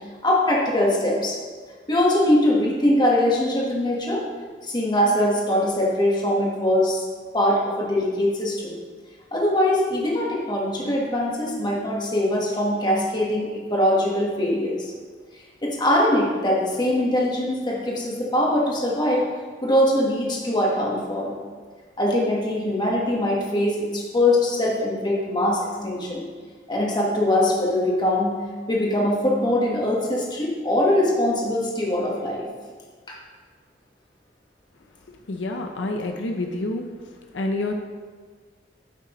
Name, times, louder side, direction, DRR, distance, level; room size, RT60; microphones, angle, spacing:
voice 1, 0.2-1.4 1.9-4.2 4.6-7.0 7.3-8.8 9.3-14.9 15.6-19.3 19.6-21.3 22.0-26.2 26.7-28.3 28.7-32.4, left 1 dB, 25° left, -3 dB, 1.4 m, -22 dB
voice 2, 35.3-36.8 37.3-37.8, left 2 dB, 85° left, 3 dB, 0.6 m, -27 dB
9.6 x 5.8 x 3.1 m, 1.5 s
head